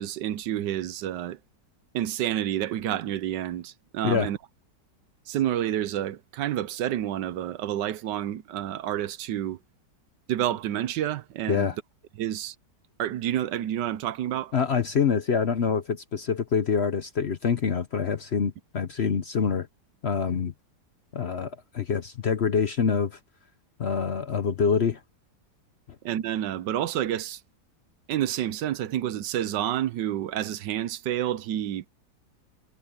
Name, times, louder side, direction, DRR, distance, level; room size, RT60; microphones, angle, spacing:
voice 1, 0.0-1.4 1.9-4.4 5.3-9.6 10.3-11.7 12.2-12.5 13.0-14.5 26.0-27.4 28.1-31.8, right 11 dB, 85° right, 1.4 m, -29 dB
voice 2, 14.5-19.7 20.0-20.5 21.1-23.2 23.8-25.0, left 6 dB, 50° left, 0.8 m, -26 dB
omnidirectional pair, 1.9 m